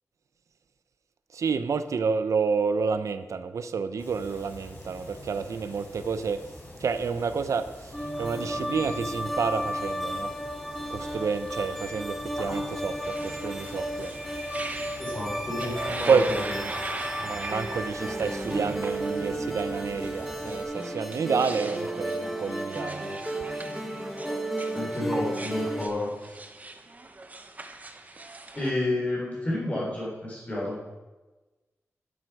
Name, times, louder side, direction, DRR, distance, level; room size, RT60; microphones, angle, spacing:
voice 1, 1.3-6.4 6.8-10.3 10.9-14.1 15.6-16.3 17.2-23.2, right 5 dB, 80° right, 11 dB, 0.7 m, -29 dB
sound 1, 4.0-20.6, left 1 dB, 40° left, 4.0 m, -46 dB
sound 2, 7.9-25.9, right 1 dB, ahead, 1.2 m, -33 dB
sound 3, 13.0-28.7, right 2 dB, 30° right, 0.9 m, -41 dB
voice 2, 15.0-16.6 24.1-24.4 24.7-26.4 28.5-30.8, left 1 dB, 25° left, -6 dB, 3.7 m, -31 dB
12.0 x 11.0 x 4.8 m, 1.2 s
wide cardioid pair, 150°, 5 cm